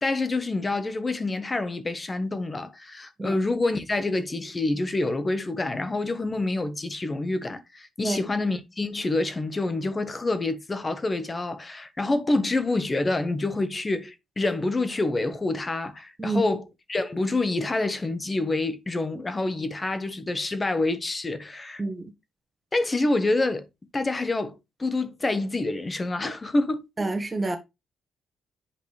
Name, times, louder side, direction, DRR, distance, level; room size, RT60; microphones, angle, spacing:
voice 1, 0.0-16.6 16.9-21.8 22.7-23.7 23.9-26.9, left 2 dB, 25° left, 1.0 m, -27 dB
voice 2, 27.0-27.6, right 2 dB, 20° right, 1.6 m, -27 dB
8.6 x 5.2 x 3.2 m
cardioid pair, 90°, 0 cm